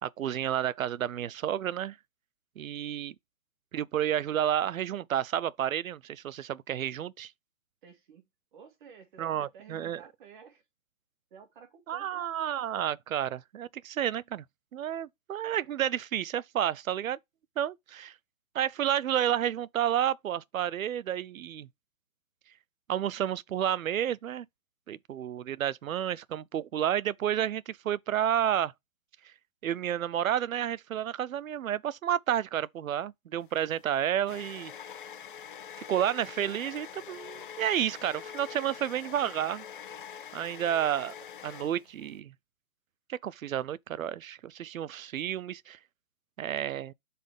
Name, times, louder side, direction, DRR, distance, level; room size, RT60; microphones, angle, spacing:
voice 1, 0.0-2.0 2.6-3.1 3.7-7.3 9.2-10.0 11.9-14.4 14.7-17.2 17.6-18.1 18.5-21.7 22.9-24.5 24.9-28.7 29.6-34.7 35.9-39.6 40.3-41.1 41.4-42.3 43.1-45.8 46.4-46.9, right 10 dB, 80° right, 0.6 m, -31 dB
voice 2, 7.8-10.6 11.3-12.2, right 7 dB, 35° right, 2.0 m, -53 dB
sound 1, 33.4-42.2, left 8 dB, 40° left, 0.6 m, -45 dB
7.3 x 4.2 x 3.4 m
hypercardioid pair, 150°, 40 cm